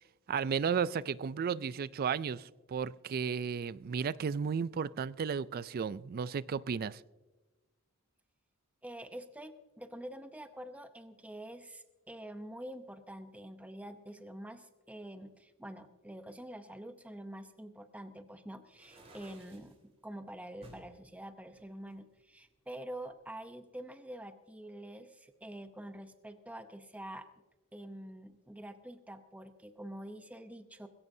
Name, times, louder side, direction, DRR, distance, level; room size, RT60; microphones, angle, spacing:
voice 1, 0.3-7.0, right 6 dB, 45° right, 18 dB, 0.3 m, -34 dB
voice 2, 8.8-19.8 20.0-27.3 27.7-30.9, right 1 dB, 5° right, 8 dB, 0.7 m, -46 dB
sound 1, 18.7-19.8 20.6-20.9 21.5-22.6, right 1 dB, 30° right, 3.6 m, -56 dB
20.5 x 16.5 x 2.7 m, 1.2 s
head